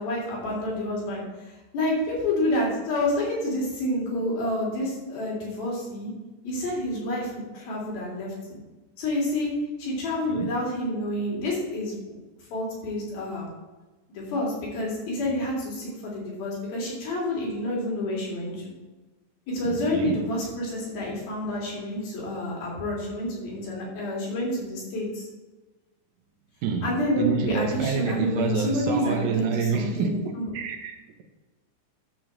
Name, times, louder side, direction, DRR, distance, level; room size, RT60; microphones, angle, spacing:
voice 1, 0.0-6.1 6.4-8.6 9.0-9.5 9.8-12.1 12.5-13.5 14.1-18.7 19.5-25.3 26.8-30.5, left 1 dB, 75° left, 5.0 m, -29 dB
voice 2, 19.7-20.2 26.6-31.2, right 5 dB, 75° right, 2.4 m, -28 dB
12.0 x 4.6 x 7.5 m
omnidirectional pair, 4.3 m